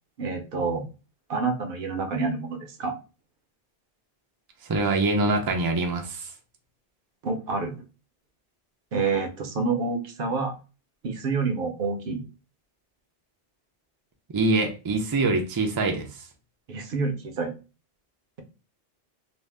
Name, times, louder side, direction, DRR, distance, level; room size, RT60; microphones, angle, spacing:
voice 1, 0.2-0.8 1.3-3.0 7.2-7.7 8.9-10.6 11.0-12.2 16.7-17.5, right 4 dB, 65° right, 5 dB, 0.8 m, -28 dB
voice 2, 4.6-6.3 14.3-16.2, right 2 dB, 40° right, 3 dB, 0.3 m, -24 dB
2.6 x 2.0 x 3.3 m, 0.32 s
omnidirectional pair, 1.0 m